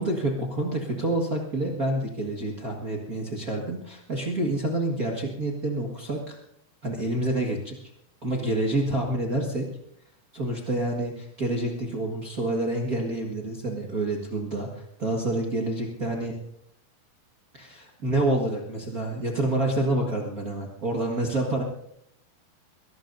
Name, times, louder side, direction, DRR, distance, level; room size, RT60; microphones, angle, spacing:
voice 1, 0.0-6.4 6.8-7.7 8.2-9.6 10.3-16.3 17.5-21.6, right 1 dB, 55° right, -2 dB, 0.9 m, -28 dB
23.0 x 19.0 x 2.7 m, 0.74 s
omnidirectional pair, 4.6 m